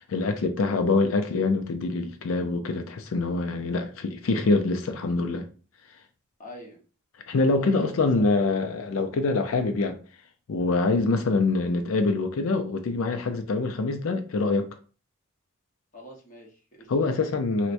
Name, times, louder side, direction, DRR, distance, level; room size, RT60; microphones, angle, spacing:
voice 1, 0.1-5.5 7.3-10.0 10.5-14.7 16.9-17.7, left 3 dB, 75° left, 0.4 m, -25 dB
voice 2, 6.4-6.8 7.6-8.3 15.9-16.9, left 1 dB, 40° left, 1.0 m, -44 dB
4.4 x 2.2 x 2.5 m
head